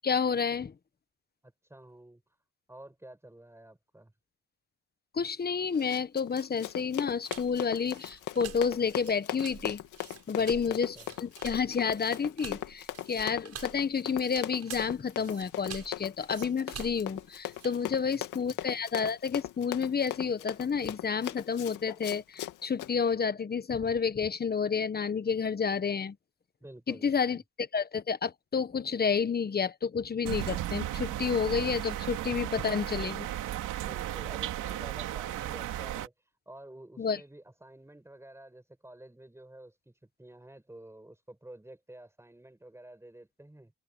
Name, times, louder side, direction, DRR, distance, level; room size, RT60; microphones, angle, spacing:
voice 1, 0.0-0.7 5.1-9.8 10.3-26.2 26.9-33.3 37.0-37.2, left 6 dB, 30° left, 1.2 m, -30 dB
voice 2, 1.4-2.2 2.7-4.1 10.4-11.1 18.1-18.5 26.6-27.4 33.8-43.7, right 1 dB, 10° right, 7.7 m, -50 dB
Run, 5.7-22.9, left 13 dB, 90° left, 2.4 m, -39 dB
sound 1, 7.3-17.8, right 8 dB, 55° right, 7.6 m, -47 dB
sound 2, 30.2-36.1, right 13 dB, 85° right, 2.9 m, -35 dB
open air
cardioid pair, 90°, 30 cm